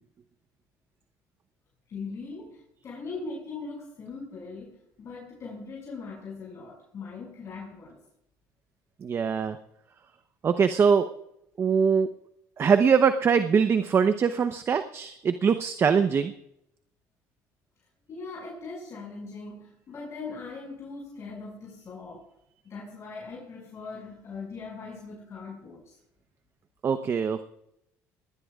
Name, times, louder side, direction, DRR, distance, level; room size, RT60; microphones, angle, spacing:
voice 1, 1.9-8.0 18.1-22.3 22.6-26.0, left 4 dB, 45° left, -3 dB, 6.1 m, -40 dB
voice 2, 9.0-9.6 10.4-11.1 11.6-12.1 12.6-16.3 26.8-27.4, right 6 dB, 40° right, 9 dB, 0.9 m, -22 dB
19.5 x 19.0 x 2.4 m, 0.79 s
cardioid pair, 105°, 7 cm